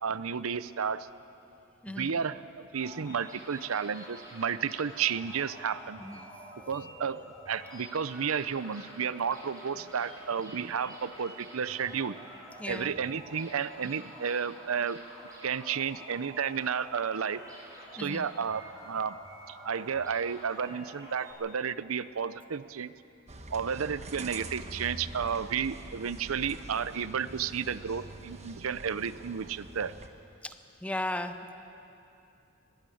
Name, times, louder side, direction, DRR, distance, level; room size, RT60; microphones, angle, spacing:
voice 1, 0.0-1.1 1.9-2.4 2.7-6.0 6.7-7.2 7.5-12.2 12.7-15.0 15.4-17.4 17.9-19.2 19.5-22.9 23.5-29.9, right 7 dB, 85° right, 15 dB, 0.6 m, -32 dB
voice 2, 1.8-2.2 6.0-6.2 12.6-12.9 18.0-18.3 30.4-30.5 30.8-31.5, left 1 dB, 5° left, 9 dB, 0.8 m, -36 dB
sound 1, 2.7-21.3, right 1 dB, 20° right, 5.3 m, -48 dB
sound 2, 23.3-30.1, right 2 dB, 35° right, 1.2 m, -45 dB
20.5 x 15.0 x 9.2 m, 2.7 s
head